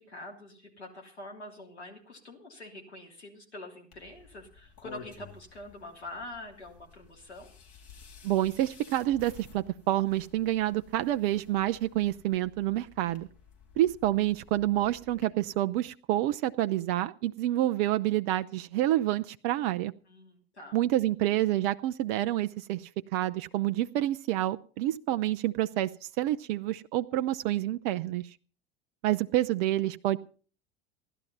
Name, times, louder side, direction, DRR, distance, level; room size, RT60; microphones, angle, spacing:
voice 1, 0.0-7.5 20.1-20.8, left 1 dB, 85° left, 1 dB, 3.2 m, -45 dB
sound 1, 3.9-15.3, left 6 dB, 45° left, 4.0 m, -53 dB
voice 2, 8.2-13.3 13.8-19.9 20.7-22.8 23.1-25.9 26.2-28.3 29.0-30.2, right 14 dB, 50° right, 11 dB, 0.6 m, -28 dB
16.0 x 12.0 x 5.5 m, 0.41 s
figure-of-eight pair, 70°, 33 cm